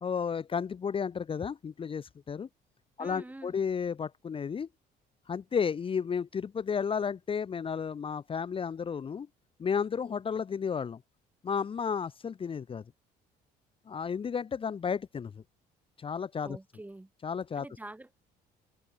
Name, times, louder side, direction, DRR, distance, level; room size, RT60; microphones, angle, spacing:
voice 1, 0.0-2.5 3.0-4.7 5.3-9.3 9.6-11.0 11.4-12.8 13.9-15.4 16.0-16.6 17.2-17.6, left 6 dB, 30° left, 1.0 m, -32 dB
voice 2, 3.0-3.6 16.4-17.1 17.6-18.2, right 2 dB, 10° right, 1.9 m, -45 dB
cardioid pair, 110°, 17 cm